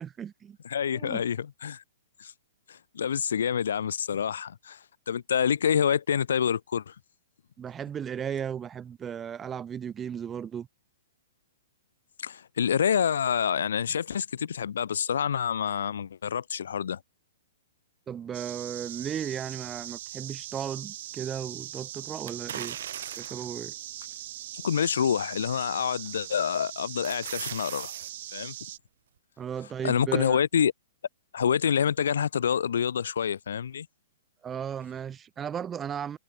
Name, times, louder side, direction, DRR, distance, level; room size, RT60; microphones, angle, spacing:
voice 1, 0.0-0.6 0.9-1.2 7.6-10.7 18.1-22.8 23.2-23.7 29.4-30.4 34.4-36.2, right 8 dB, 10° right, 1.1 m, -35 dB
voice 2, 0.6-1.8 2.2-2.3 2.7-4.8 5.1-6.9 12.2-17.0 24.6-27.9 28.3-28.5 29.8-30.7 31.3-33.9, left 8 dB, 80° left, 3.2 m, -27 dB
sound 1, 18.3-28.8, right 14 dB, 45° right, 4.9 m, -41 dB
sound 2, 22.3-23.5 24.1-24.2 25.8-26.1 26.5-28.1 28.5-28.6, right 9 dB, 65° right, 0.9 m, -39 dB
hypercardioid pair, 165°, 0 cm